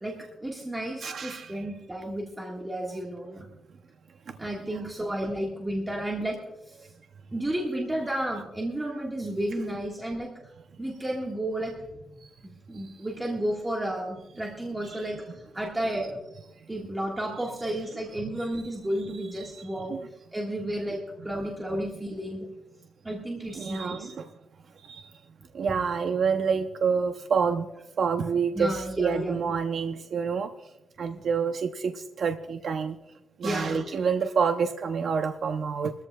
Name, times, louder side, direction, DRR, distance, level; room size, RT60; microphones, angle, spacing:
voice 1, 0.0-3.5 4.4-6.4 6.7-6.8 7.3-10.3 10.8-11.9 12.7-16.2 16.7-20.0 20.3-22.5 23.0-24.1 28.5-29.4 33.4-33.8, right 1 dB, 10° right, -2 dB, 1.6 m, -32 dB
voice 2, 1.0-1.6 12.2-12.3 14.9-15.0 19.4-20.0 23.5-24.3 24.8-25.0 25.5-27.7 28.0-30.5 31.0-33.0 33.4-35.9, right 6 dB, 55° right, 7 dB, 0.6 m, -28 dB
23.0 x 14.0 x 2.3 m, 0.95 s
wide cardioid pair, 160°, 0 cm